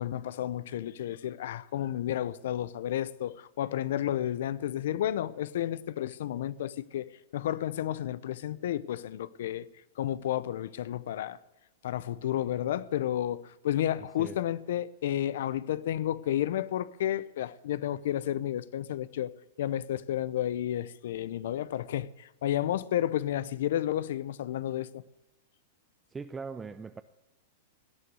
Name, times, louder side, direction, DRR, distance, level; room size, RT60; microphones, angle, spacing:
voice 1, 0.0-9.7 10.0-11.4 11.8-19.3 19.6-25.0, left 11 dB, 70° left, 0.7 m, -31 dB
voice 2, 26.1-27.0, right 5 dB, 15° right, 0.5 m, -40 dB
17.5 x 9.5 x 8.1 m
hypercardioid pair, 125°, 0 cm